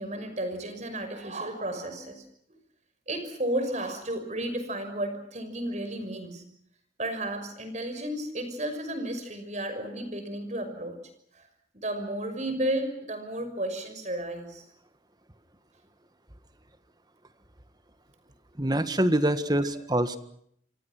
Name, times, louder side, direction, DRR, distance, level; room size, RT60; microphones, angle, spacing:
voice 1, 0.0-2.2 2.5-2.6 3.1-6.4 7.0-11.0 11.3-11.5 11.7-14.6, right 1 dB, 40° right, 8 dB, 5.9 m, -33 dB
voice 2, 18.6-20.2, right 1 dB, 20° right, 11 dB, 1.7 m, -25 dB
28.0 x 24.5 x 6.1 m, 0.69 s
head